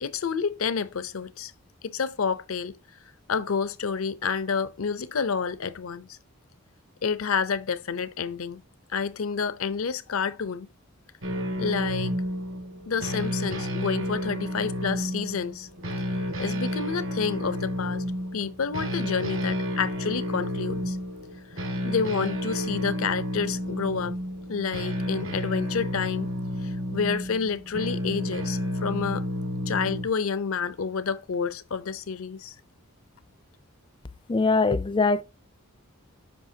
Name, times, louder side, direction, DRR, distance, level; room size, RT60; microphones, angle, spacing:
voice 1, 0.0-1.5 1.8-2.8 3.3-6.2 7.0-8.6 8.9-10.7 11.6-12.1 12.9-15.7 16.4-18.0 18.3-21.0 21.8-24.2 24.5-26.3 26.6-29.2 29.7-32.5, left 6 dB, 80° left, 0.6 m, -29 dB
sound 1, 11.2-30.1, equal, 65° right, 1.7 m, -31 dB
voice 2, 34.3-35.2, left 3 dB, 25° left, 0.3 m, -22 dB
8.5 x 5.7 x 2.8 m
head